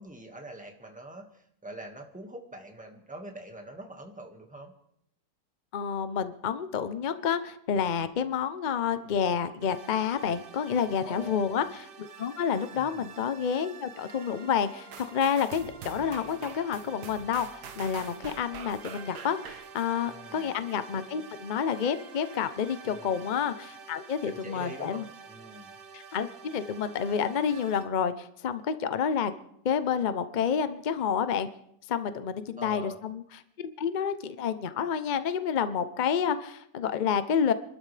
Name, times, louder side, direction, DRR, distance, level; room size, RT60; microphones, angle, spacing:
voice 1, 0.0-4.7 11.0-11.6 12.7-13.1 20.1-20.5 22.9-23.2 24.2-25.8 32.6-33.0, right 1 dB, 5° right, 3 dB, 1.6 m, -44 dB
voice 2, 5.7-25.0 25.9-29.3 29.6-31.5 31.9-33.2 33.6-37.5, left 7 dB, 65° left, 11 dB, 0.4 m, -29 dB
sound 1, 9.6-27.9, right 5 dB, 45° right, 0.8 m, -49 dB
sound 2, 14.9-20.8 21.3-21.4, right 7 dB, 70° right, 1.6 m, -45 dB
26.0 x 12.5 x 3.3 m, 0.74 s
omnidirectional pair, 1.9 m